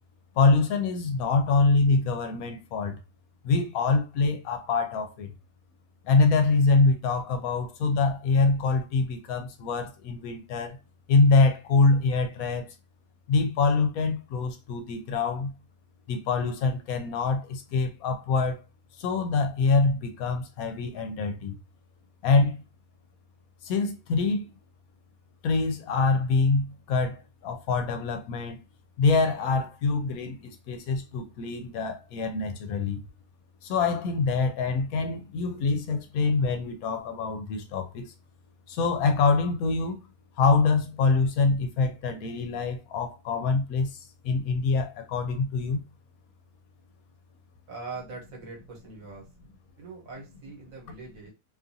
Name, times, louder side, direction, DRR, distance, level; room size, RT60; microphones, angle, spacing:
voice 1, 0.4-3.0 3.4-5.3 6.0-10.8 11.1-12.7 13.3-15.5 16.1-18.6 19.0-21.6 22.2-22.6 23.6-24.5 25.4-28.6 29.0-33.0 33.6-38.1 38.7-40.0 40.4-45.8, left 4 dB, 75° left, 1.0 m, -25 dB
voice 2, 47.7-49.3 49.8-51.3, right 4 dB, 65° right, 1.4 m, -42 dB
2.7 x 2.5 x 2.6 m
omnidirectional pair, 1.6 m